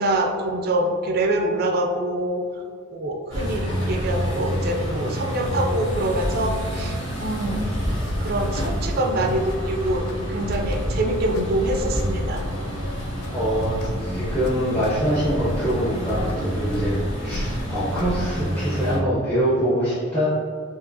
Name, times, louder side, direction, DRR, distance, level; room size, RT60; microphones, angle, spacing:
voice 1, 0.0-2.4 2.9-7.6 8.2-12.4, right 1 dB, 45° right, 2 dB, 0.3 m, -25 dB
sound 1, 3.3-19.0, equal, 60° left, 1.2 m, -28 dB
sound 2, 8.0-18.6, left 1 dB, 90° left, 0.3 m, -35 dB
voice 2, 13.3-20.3, equal, 10° left, -11 dB, 0.6 m, -24 dB
4.6 x 2.8 x 2.6 m, 2.1 s
head